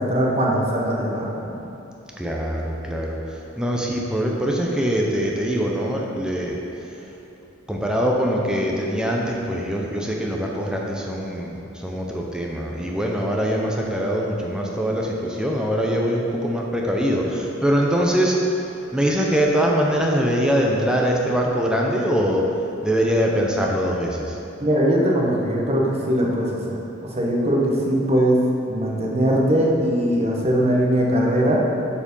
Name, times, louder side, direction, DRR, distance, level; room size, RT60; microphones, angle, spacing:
voice 1, 0.0-1.6 24.6-26.5 27.1-28.4 28.7-31.6, equal, 30° right, -2 dB, 1.0 m, -20 dB
voice 2, 2.2-3.2 3.6-6.6 7.7-11.6 11.8-18.4 18.9-22.4 22.8-24.3, equal, 5° right, -2 dB, 0.5 m, -23 dB
7.2 x 4.5 x 5.3 m, 2.9 s
head